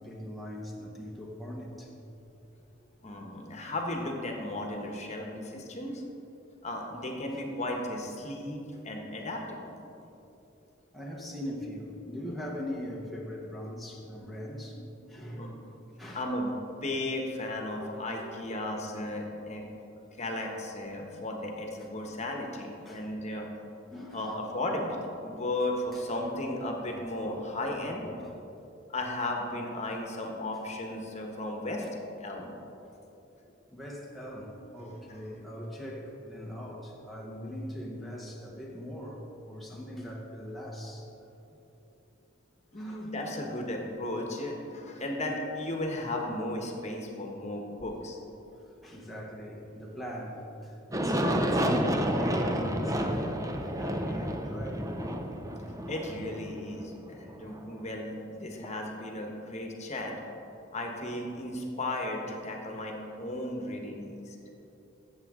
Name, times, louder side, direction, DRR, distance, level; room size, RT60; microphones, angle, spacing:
voice 1, 0.0-1.9 10.9-15.5 16.0-16.3 21.8-22.1 22.8-23.1 23.9-24.4 25.9-26.3 31.8-31.9 33.7-41.1 42.7-43.1 48.6-55.3 58.6-58.8, equal, ahead, -3 dB, 1.0 m, -40 dB
voice 2, 3.0-6.0 6.6-9.8 15.4-15.5 16.1-16.5 16.8-19.6 20.2-23.5 24.1-25.0 25.2-28.1 28.9-31.8 32.2-32.5 34.8-34.9 42.7-48.2 55.9-60.1 60.7-64.3, left 1 dB, 35° left, 1 dB, 1.2 m, -35 dB
Aircraft, 50.9-57.6, equal, 15° right, 0.6 m, -30 dB
15.0 x 7.2 x 3.7 m, 3.0 s
head